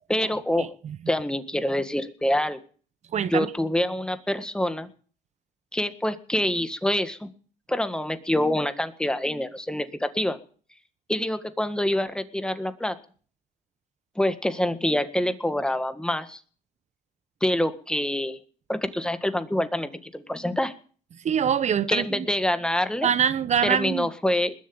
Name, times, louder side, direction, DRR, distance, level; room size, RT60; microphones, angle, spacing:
voice 1, 0.1-0.7 1.1-2.6 3.3-4.9 5.7-7.3 7.7-10.4 11.1-13.0 14.2-16.4 17.4-18.4 18.7-20.7 21.9-23.1 23.6-24.5, left 1 dB, 5° left, 1.7 m, -26 dB
voice 2, 3.1-3.5 21.2-22.3 23.0-24.1, right 8 dB, 45° right, 0.9 m, -24 dB
20.5 x 7.5 x 8.7 m
cardioid pair, 110°, 17 cm